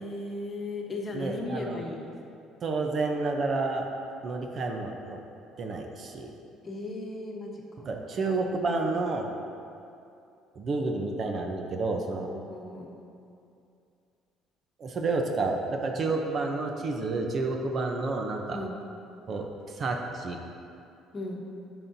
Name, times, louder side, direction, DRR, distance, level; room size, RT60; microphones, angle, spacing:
voice 1, 0.0-2.1 6.6-7.9 12.2-12.9 18.5-18.7 21.1-21.4, left 2 dB, 35° left, 0 dB, 1.1 m, -36 dB
voice 2, 1.1-1.8 2.6-3.9 4.2-5.2 5.6-6.3 7.8-9.2 10.5-12.3 14.8-18.6 19.3-20.4, right 3 dB, 45° right, 3 dB, 0.7 m, -30 dB
10.5 x 6.0 x 2.7 m, 2.6 s
cardioid pair, 105°, 0 cm